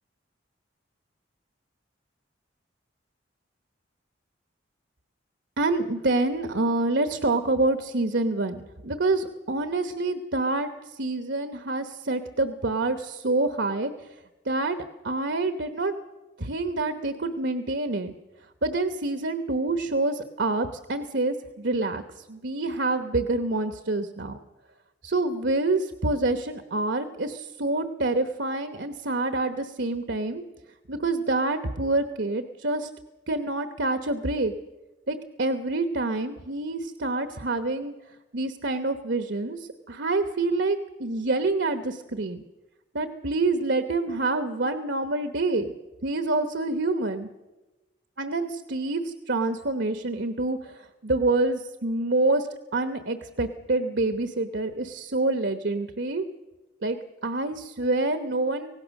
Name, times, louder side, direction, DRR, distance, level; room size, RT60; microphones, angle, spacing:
voice 1, 5.6-14.2 14.4-14.8 15.0-15.9 16.4-18.1 18.6-24.4 25.0-30.4 30.9-32.9 33.3-34.5 35.1-37.9 38.3-42.4 42.9-45.7 46.0-47.3 48.2-52.5 52.7-56.3 56.8-57.0 57.2-58.7, right 2 dB, 65° right, 8 dB, 1.1 m, -27 dB
25.0 x 18.0 x 6.5 m, 1.1 s
head